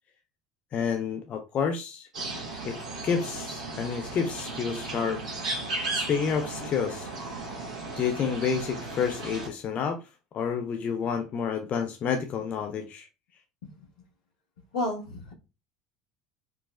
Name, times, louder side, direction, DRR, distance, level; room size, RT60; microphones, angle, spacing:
voice 1, 0.7-2.1 2.6-2.8 3.0-5.2 5.9-7.1 8.0-10.0 10.3-13.1, left 6 dB, 45° left, 0.5 m, -29 dB
sound 1, 2.1-9.5, right 3 dB, 80° right, 0.8 m, -35 dB
voice 2, 14.7-15.3, left 1 dB, 80° left, 1.2 m, -33 dB
4.6 x 2.0 x 2.3 m
hypercardioid pair, 65°, 3 cm